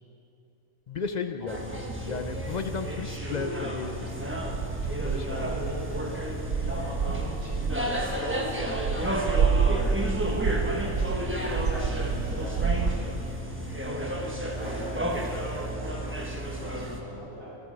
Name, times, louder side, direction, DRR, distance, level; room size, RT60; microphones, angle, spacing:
voice 1, 0.9-1.6 2.0-5.5 9.7-10.0, left 5 dB, 55° left, 8 dB, 0.5 m, -35 dB
voice 2, 1.4-1.9 5.3-9.2 10.8-13.3 14.3-17.6, right 1 dB, 80° right, -8 dB, 5.0 m, -41 dB
sound 1, 1.5-17.0, equal, 10° right, 1.2 m, -32 dB
sound 2, 3.9-13.0, right 6 dB, 55° right, 0.8 m, -29 dB
25.5 x 8.7 x 5.1 m, 2.8 s
omnidirectional pair, 1.4 m